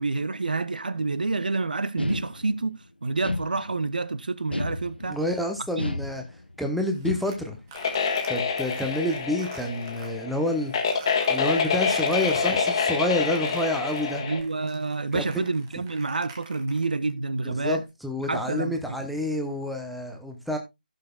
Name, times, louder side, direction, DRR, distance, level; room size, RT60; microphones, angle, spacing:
voice 1, 0.0-2.7 3.0-5.2 5.8-5.9 14.2-17.8 18.3-19.0, right 3 dB, 60° right, 0.8 m, -28 dB
sound 1, 2.0-2.7 3.2-4.0 4.5-5.3 5.8-6.6 7.0-7.6, left 1 dB, 85° left, 0.8 m, -32 dB
voice 2, 5.1-6.2 6.6-7.6 8.3-10.9 11.3-14.2 15.1-15.4 17.4-20.6, left 1 dB, ahead, 0.8 m, -28 dB
sound 2, 6.9-10.1 10.5-17.1, right 4 dB, 20° right, 1.9 m, -45 dB
sound 3, 7.7-14.4, left 5 dB, 30° left, 1.6 m, -27 dB
16.0 x 6.6 x 2.3 m
figure-of-eight pair, 150°, 5 cm